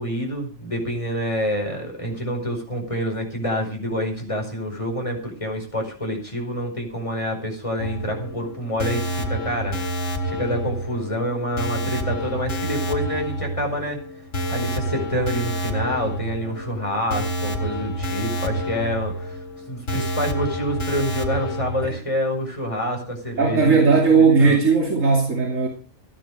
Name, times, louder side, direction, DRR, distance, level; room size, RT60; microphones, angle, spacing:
voice 1, 0.0-9.8 10.2-14.0 14.5-19.4 19.7-24.6, equal, 25° left, 5.2 m, -27 dB
sound 1, 7.8-21.9, right 1 dB, 75° left, 2.7 m, -28 dB
voice 2, 23.4-25.7, right 4 dB, 90° right, 3.0 m, -17 dB
15.0 x 11.5 x 4.9 m
omnidirectional pair, 1.3 m